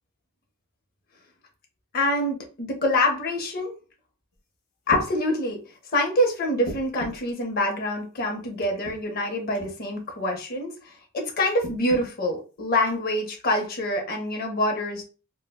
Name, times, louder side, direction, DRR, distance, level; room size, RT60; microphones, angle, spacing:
voice 1, 1.9-3.7 4.9-5.6 5.9-15.1, left 1 dB, 40° left, 2 dB, 0.5 m, -26 dB
sound 1, 4.3-4.4 4.9-5.1 6.6-7.3 8.6-9.0 9.5-9.7 11.6-12.1 12.9-13.0, equal, 80° left, 0.8 m, -35 dB
3.3 x 2.0 x 2.2 m, 0.34 s
head